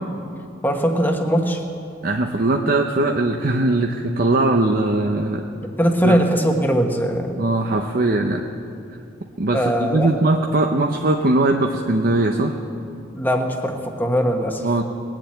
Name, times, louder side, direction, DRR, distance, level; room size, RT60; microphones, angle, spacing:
voice 1, 0.6-1.6 5.6-7.3 9.5-10.1 13.1-14.7, equal, 10° left, 3 dB, 1.3 m, -20 dB
voice 2, 2.0-5.4 6.0-6.2 7.4-8.4 9.4-12.6 14.6-14.8, right 2 dB, 50° right, 3 dB, 0.7 m, -20 dB
20.0 x 7.5 x 9.1 m, 2.6 s
head